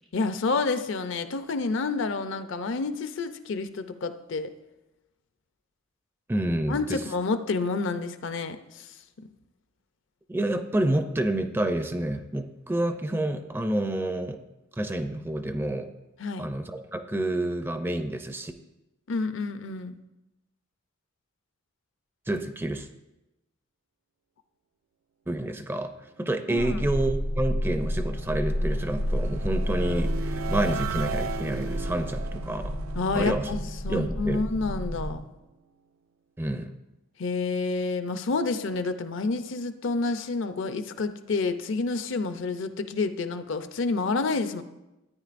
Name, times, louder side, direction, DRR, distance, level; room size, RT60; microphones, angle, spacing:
voice 1, 0.1-4.5 6.7-8.9 16.2-16.5 19.1-19.9 26.5-26.8 32.9-33.6 33.8-35.3 37.2-44.6, left 3 dB, 60° left, 10 dB, 0.5 m, -29 dB
voice 2, 6.3-7.0 10.3-14.4 14.7-15.9 16.4-18.5 22.3-22.9 25.3-32.8 33.1-33.5 33.9-34.4 36.4-36.7, right 1 dB, 10° right, 7 dB, 0.4 m, -29 dB
sound 1, 26.6-35.2, equal, 90° left, 2.2 m, -30 dB
sound 2, 27.4-34.5, right 6 dB, 75° right, 0.4 m, -37 dB
13.5 x 9.3 x 2.5 m, 0.99 s
head